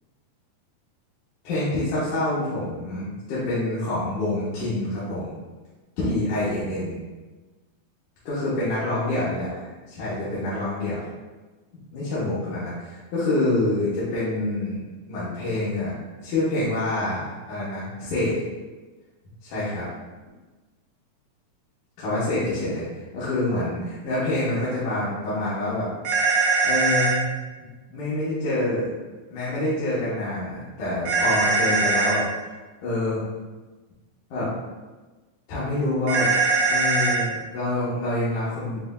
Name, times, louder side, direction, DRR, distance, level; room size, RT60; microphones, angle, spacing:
voice 1, 1.4-5.3 6.0-7.0 8.3-9.5 9.9-11.0 11.9-14.8 15.1-15.9 16.2-18.3 19.4-19.9 22.0-22.8 23.1-25.9 26.6-27.3 27.9-28.9 29.3-32.5 32.8-33.2 34.3-34.5 35.5-36.3 36.7-38.8, left 1 dB, 70° left, -11 dB, 2.4 m, -26 dB
sound 1, 26.0-27.2 31.1-32.2 36.1-37.2, right 3 dB, 85° right, 2.4 m, -21 dB
7.4 x 2.5 x 2.2 m, 1.2 s
omnidirectional pair, 3.6 m